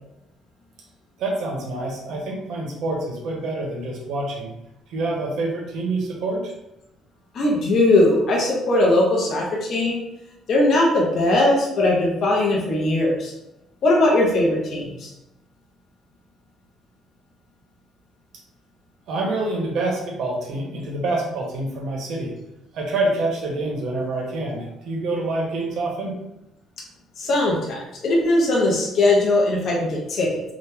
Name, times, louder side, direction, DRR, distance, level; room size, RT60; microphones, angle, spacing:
voice 1, 1.2-4.5 4.9-6.5 19.1-22.3 22.7-26.1, right 2 dB, 60° right, -1 dB, 0.8 m, -26 dB
voice 2, 7.3-10.0 10.5-13.3 13.8-15.1 27.2-30.4, left 2 dB, 45° left, -3 dB, 0.6 m, -19 dB
2.9 x 2.1 x 3.4 m, 0.92 s
cardioid pair, 165°, 0 cm